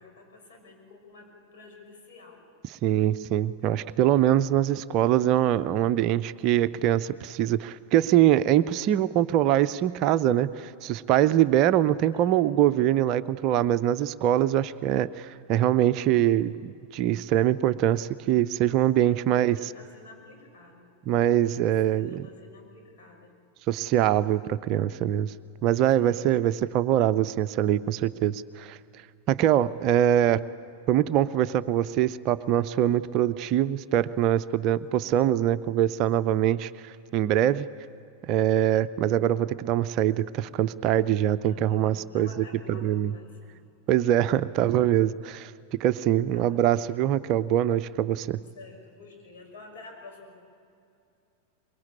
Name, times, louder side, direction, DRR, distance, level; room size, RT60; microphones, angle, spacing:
voice 1, 0.0-2.5 12.1-12.4 19.0-20.9 21.6-23.4 25.9-26.2 34.9-35.2 41.4-43.5 46.3-46.9 48.5-50.4, left 3 dB, 55° left, 2 dB, 5.8 m, -50 dB
voice 2, 2.8-19.6 21.1-22.2 23.7-25.3 25.6-28.8 29.3-30.4 30.9-37.7 38.3-42.3 42.7-43.1 43.9-45.5 45.8-48.4, right 11 dB, 40° right, 14 dB, 0.5 m, -23 dB
24.0 x 22.0 x 8.6 m, 2.6 s
figure-of-eight pair, 90°, 0 cm